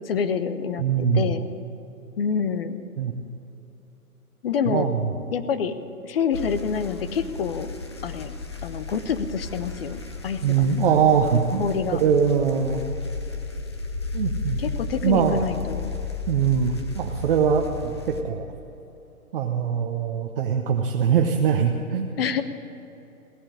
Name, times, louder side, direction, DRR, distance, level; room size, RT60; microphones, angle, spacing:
voice 1, 0.0-1.5 2.2-2.8 4.4-4.9 5.3-5.7 6.0-7.7 8.0-8.3 8.6-10.7 11.6-12.0 14.6-15.9 22.2-22.4, left 6 dB, 40° left, 11 dB, 0.9 m, -27 dB
voice 2, 0.8-1.3 3.0-3.1 4.7-5.0 10.4-11.6 12.0-13.0 14.1-14.6 15.0-15.4 16.3-17.9 18.2-18.4 19.3-22.1, right 7 dB, 40° right, 2 dB, 0.9 m, -22 dB
sound 1, 6.3-18.2, left 3 dB, 20° left, 0.4 m, -34 dB
16.5 x 8.7 x 9.9 m, 3.0 s
hypercardioid pair, 155°, 44 cm